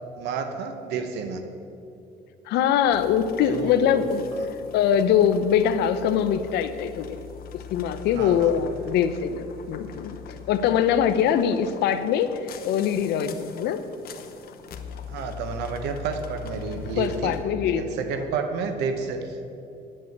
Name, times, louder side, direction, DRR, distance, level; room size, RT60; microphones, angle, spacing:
voice 1, 0.2-1.4 3.5-4.0 4.3-4.5 8.1-8.5 15.1-17.4 17.7-19.5, right 5 dB, 85° right, 7 dB, 0.9 m, -30 dB
voice 2, 2.5-4.3 4.7-7.0 7.7-10.2 10.5-13.8 17.0-17.8, left 8 dB, 80° left, 11 dB, 0.7 m, -23 dB
sound 1, 2.9-17.4, left 8 dB, 60° left, 0.9 m, -42 dB
10.5 x 5.6 x 7.8 m, 2.7 s
cardioid pair, 110°, 17 cm